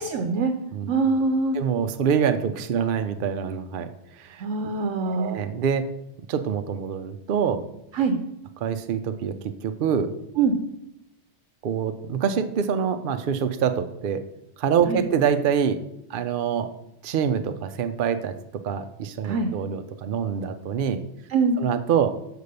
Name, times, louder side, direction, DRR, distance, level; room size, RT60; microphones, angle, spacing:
voice 1, 0.0-0.5 0.9-1.6 4.4-5.4 7.9-8.2 10.4-10.5 14.9-15.0 19.2-19.5 21.3-21.6, right 4 dB, 85° right, 6 dB, 1.0 m, -23 dB
voice 2, 1.5-3.9 4.2-4.4 5.0-5.9 6.3-7.6 8.6-9.4 9.6-10.1 11.6-14.2 14.6-15.8 16.1-16.7 17.0-18.4 18.6-21.0 21.6-22.2, right 7 dB, 60° right, 9 dB, 0.6 m, -25 dB
6.8 x 4.5 x 6.6 m, 0.85 s
omnidirectional pair, 1.3 m